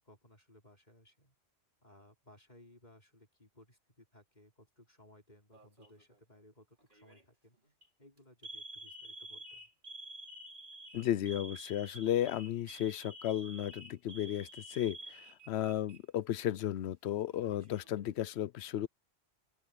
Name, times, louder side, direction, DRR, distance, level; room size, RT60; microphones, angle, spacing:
voice 1, 0.0-1.4 1.8-7.7 8.0-9.7, left 1 dB, 40° left, 5.3 m, -61 dB
Alarm, 5.5-6.0 6.9-7.2 7.7-7.9 8.4-16.0 16.3-16.4 17.3-18.0, right 1 dB, 50° right, 3.3 m, -50 dB
voice 2, 10.9-18.9, left 11 dB, 80° left, 0.9 m, -34 dB
open air
omnidirectional pair, 1.1 m